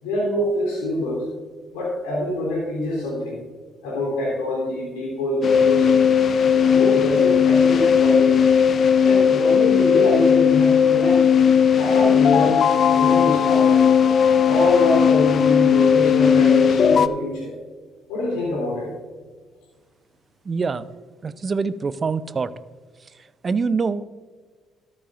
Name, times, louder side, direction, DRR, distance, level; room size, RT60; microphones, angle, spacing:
voice 1, 0.0-1.3 1.7-3.4 3.8-6.0 6.7-8.4 9.0-11.2 11.8-12.6 12.9-13.8 14.4-17.5 18.1-18.9, left 1 dB, 80° left, -4 dB, 3.3 m, -25 dB
sound 1, 5.4-17.1, left 7 dB, 50° left, 0.5 m, -17 dB
voice 2, 20.4-20.9 21.2-22.5 23.0-24.1, right 4 dB, 40° right, 16 dB, 0.6 m, -25 dB
13.5 x 13.0 x 2.5 m, 1.5 s
hypercardioid pair, 50°, 0 cm